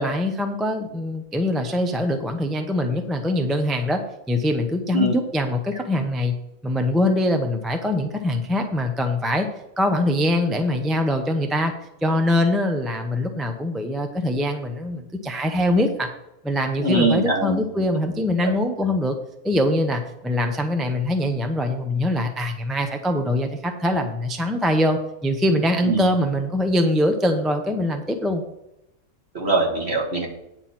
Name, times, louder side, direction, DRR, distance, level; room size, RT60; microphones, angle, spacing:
voice 1, 0.0-4.0 4.3-6.3 6.6-9.5 9.8-11.7 12.0-16.1 16.4-19.2 19.4-28.4, left 1 dB, ahead, 4 dB, 0.5 m, -23 dB
voice 2, 16.8-17.6 25.8-26.0 29.3-30.3, right 2 dB, 45° right, -1 dB, 2.3 m, -21 dB
9.7 x 4.4 x 7.6 m, 0.87 s
omnidirectional pair, 1.5 m